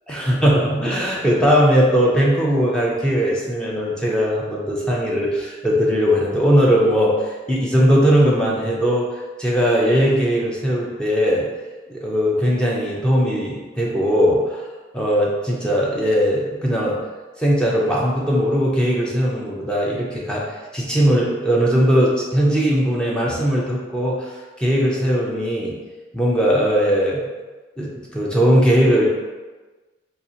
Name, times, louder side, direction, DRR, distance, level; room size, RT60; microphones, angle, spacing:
voice 1, 0.1-11.5 11.9-14.7 14.9-17.0 17.4-25.8 26.1-27.3 27.8-29.1, equal, 5° left, -4 dB, 0.4 m, -19 dB
4.1 x 2.4 x 2.7 m, 1.3 s
head